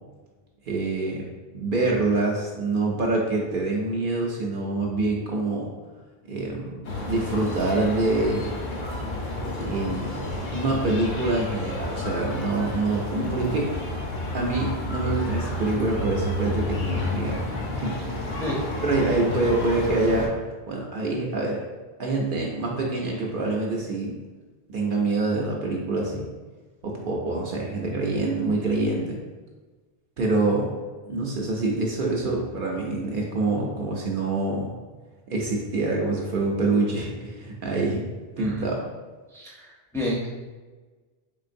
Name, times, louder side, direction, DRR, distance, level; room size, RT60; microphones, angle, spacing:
voice 1, 0.6-1.3 1.5-5.7 6.3-8.6 9.7-10.1 10.5-13.7 14.3-17.4 17.7-18.4 18.8-20.3 20.7-21.6 22.0-24.2 24.7-26.3 26.8-29.2 30.2-30.7 31.1-34.7 35.3-38.0 38.4-38.8, right 2 dB, 60° right, -1 dB, 0.7 m, -26 dB
sound 1, 6.8-20.3, left 1 dB, 65° left, 1.0 m, -30 dB
voice 2, 39.9-40.3, left 1 dB, 5° left, -4 dB, 0.5 m, -29 dB
3.8 x 3.4 x 2.5 m, 1.3 s
omnidirectional pair, 1.1 m